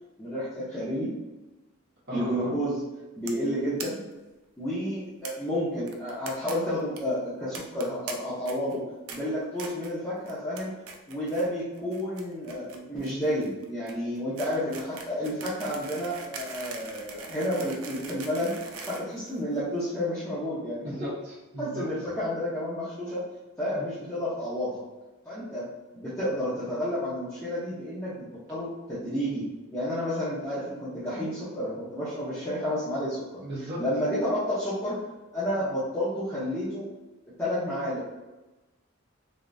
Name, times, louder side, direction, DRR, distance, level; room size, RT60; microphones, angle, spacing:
voice 1, 0.2-1.1 2.1-2.8 3.1-4.0 4.6-8.8 9.1-10.7 11.1-20.9 21.6-23.2 23.6-24.8 25.2-25.7 25.9-29.4 29.7-33.4 33.8-35.0 35.3-36.9 37.4-38.0, equal, 10° left, -12 dB, 0.8 m, -30 dB
voice 2, 2.1-2.5 20.8-21.8 23.7-23.8 33.4-33.8, right 1 dB, 50° right, -8 dB, 0.8 m, -36 dB
sound 1, 3.3-3.5 3.8-3.9 4.1-4.2 4.4-4.5 5.2-5.3 5.9-6.5 6.8-7.0 7.5-8.1 8.4-8.8 9.1-9.2 9.6-9.9 10.3-10.6 10.9-11.5 11.7-19.8, right 5 dB, 75° right, 0.5 m, -41 dB
3.4 x 2.8 x 2.6 m, 1.1 s
head